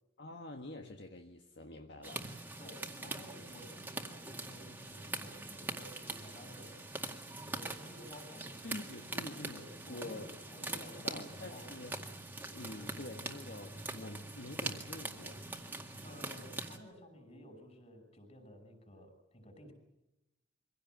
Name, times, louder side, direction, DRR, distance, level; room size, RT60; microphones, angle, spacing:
voice 1, 0.2-2.3 8.6-10.3 10.7-12.0 12.5-15.4, left 2 dB, 60° left, 3 dB, 1.6 m, -47 dB
sound 1, 2.0-16.8, right 2 dB, 10° right, 2.0 m, -43 dB
voice 2, 2.6-6.8 7.4-8.6 9.5-11.8 16.0-19.7, equal, 35° left, 5 dB, 6.1 m, -53 dB
24.5 x 17.0 x 9.2 m, 0.93 s
head